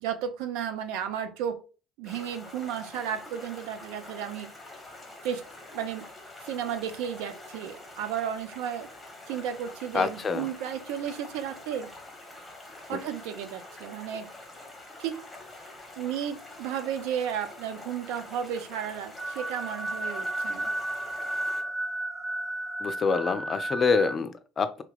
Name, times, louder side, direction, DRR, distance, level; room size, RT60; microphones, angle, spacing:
voice 1, 0.0-1.6 2.0-4.5 5.2-5.4 5.7-6.1 6.4-8.9 9.3-11.9 12.9-14.3 15.0-15.2 16.0-20.7, right 9 dB, 65° right, 9 dB, 0.4 m, -33 dB
Stream, 2.1-21.6, left 2 dB, 10° left, 1.1 m, -46 dB
voice 2, 9.9-10.5 12.9-13.0 22.8-24.8, left 5 dB, 35° left, 11 dB, 0.4 m, -26 dB
sound 1, 19.2-24.2, right 1 dB, 20° right, 1.2 m, -33 dB
2.8 x 2.3 x 3.7 m, 0.34 s
figure-of-eight pair, 55°, 0 cm